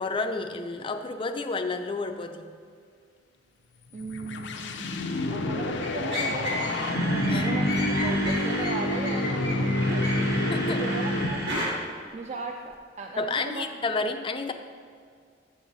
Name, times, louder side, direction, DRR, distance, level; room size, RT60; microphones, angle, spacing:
voice 1, 0.0-2.5 7.3-7.5 10.5-10.8 13.2-14.5, left 3 dB, 30° left, 6 dB, 0.4 m, -30 dB
sound 1, 3.9-11.7, left 1 dB, 70° left, 0.6 m, -28 dB
voice 2, 3.9-5.0 5.3-13.7, right 3 dB, 40° right, 2 dB, 0.4 m, -37 dB
sound 2, 5.8-6.8 7.1-10.5 11.5-11.7, left 1 dB, 70° right, 2.1 m, -33 dB
Camera, 6.7-8.8 9.5-11.8 12.1-12.2 12.7-12.8, right 2 dB, 55° right, 1.2 m, -36 dB
7.7 x 6.9 x 4.0 m, 2.1 s
head